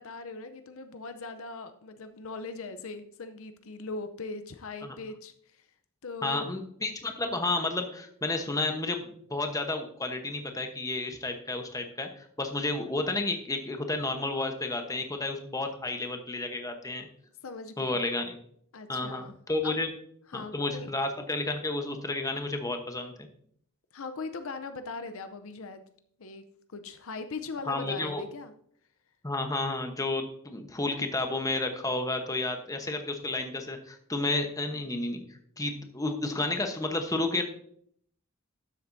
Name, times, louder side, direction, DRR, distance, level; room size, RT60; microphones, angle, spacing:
voice 1, 0.0-5.7 6.0-6.5 17.4-18.1 18.7-19.3 19.6-19.8 20.3-20.9 23.9-25.8 26.2-28.5, left 3 dB, 65° left, 9 dB, 0.6 m, -40 dB
voice 2, 6.2-17.1 17.8-18.4 18.9-19.9 20.3-23.3 27.7-28.2 29.2-35.2 35.6-37.5, left 2 dB, 15° left, 5 dB, 1.0 m, -31 dB
12.5 x 7.6 x 2.7 m, 0.65 s
head